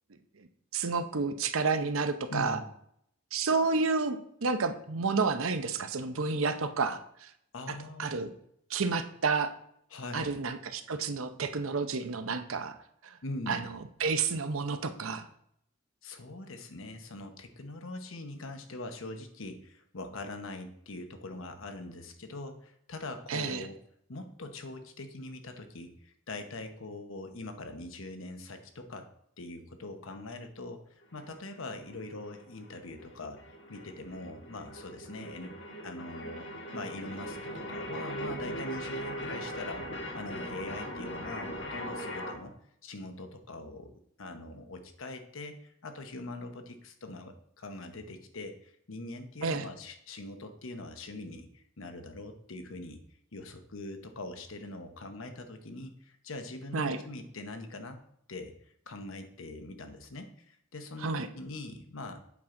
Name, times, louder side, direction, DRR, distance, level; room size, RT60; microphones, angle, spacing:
voice 1, 0.7-2.6 3.3-7.3 7.7-8.3 8.7-9.5 10.1-12.8 13.0-13.1 13.5-13.7 14.0-15.3 23.3-23.7 49.4-49.7 56.7-57.0 61.0-61.3, right 4 dB, 90° right, 9 dB, 0.7 m, -30 dB
voice 2, 2.3-2.7 7.5-8.2 9.9-10.3 13.2-13.7 16.0-23.8 24.1-29.1 29.4-33.4 33.7-35.5 35.8-36.5 36.7-39.8 40.1-42.5 42.8-43.9 44.2-53.0 53.3-58.0 58.3-62.2, left 2 dB, 80° left, 7 dB, 1.0 m, -42 dB
sound 1, 31.0-42.3, equal, 60° left, 1.5 m, -40 dB
8.3 x 5.9 x 3.8 m, 0.71 s
head